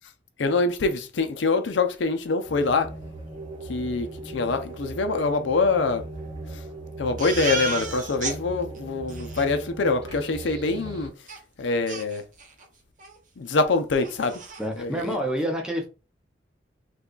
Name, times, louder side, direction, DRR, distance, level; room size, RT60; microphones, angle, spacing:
voice 1, 0.4-2.9 3.7-6.0 7.0-11.1 11.6-12.2 13.4-14.4 14.8-15.2, left 3 dB, 80° left, 0.5 m, -25 dB
sound 1, 2.4-11.1, right 2 dB, 20° right, 1.0 m, -39 dB
Crying sobbing, 7.2-8.4 8.8-8.9 9.1-9.5 11.3-11.4 11.9-12.7 13.0-13.2 13.5-13.6 14.0-14.6, right 3 dB, 45° right, 0.7 m, -33 dB
voice 2, 14.6-15.9, equal, 5° right, 0.7 m, -28 dB
3.3 x 2.3 x 3.8 m
head